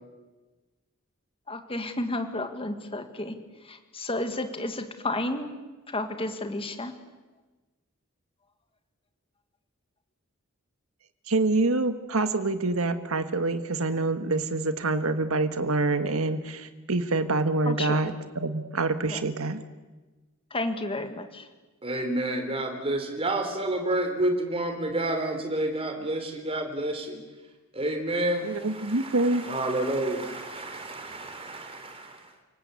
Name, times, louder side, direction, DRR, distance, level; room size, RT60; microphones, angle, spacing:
voice 1, 1.5-3.4 3.7-5.5 5.9-6.9 17.7-18.0 19.1-19.2 20.5-21.4, left 2 dB, 25° left, 7 dB, 2.0 m, -31 dB
voice 2, 11.3-19.6 28.4-29.4, right 2 dB, 90° right, 9 dB, 1.6 m, -26 dB
voice 3, 21.8-27.2 27.7-32.3, right 1 dB, 25° right, 5 dB, 3.7 m, -29 dB
29.5 x 19.0 x 8.3 m, 1.2 s
head